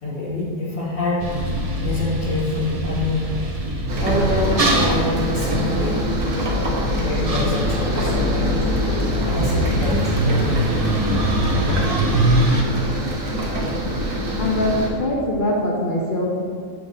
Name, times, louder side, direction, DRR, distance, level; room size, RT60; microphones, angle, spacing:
voice 1, 0.0-1.4 1.8-3.4 4.0-6.1 7.0-8.6 9.2-10.9, left 2 dB, 65° left, -7 dB, 2.5 m, -26 dB
sound 1, 1.2-12.6, equal, 35° right, 0.8 m, -23 dB
sound 2, 3.9-14.9, right 1 dB, 75° right, 1.5 m, -25 dB
voice 2, 14.4-16.4, left 1 dB, 40° left, -3 dB, 1.0 m, -22 dB
8.8 x 6.6 x 2.8 m, 2.3 s
omnidirectional pair, 1.4 m